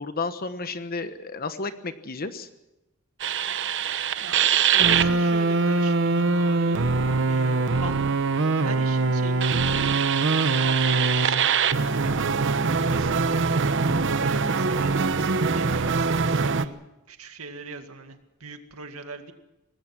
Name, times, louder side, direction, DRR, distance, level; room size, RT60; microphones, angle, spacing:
voice 1, 0.0-2.5, left 3 dB, 45° left, 10 dB, 1.2 m, -32 dB
as orelhas do donkey kelly, 3.2-16.6, right 4 dB, 60° right, 1.0 m, -23 dB
voice 2, 4.2-6.9 7.3-7.9 8.5-12.3 12.9-16.8 17.1-19.3, right 3 dB, 90° right, 7 dB, 2.2 m, -40 dB
24.5 x 20.0 x 6.1 m, 0.98 s
head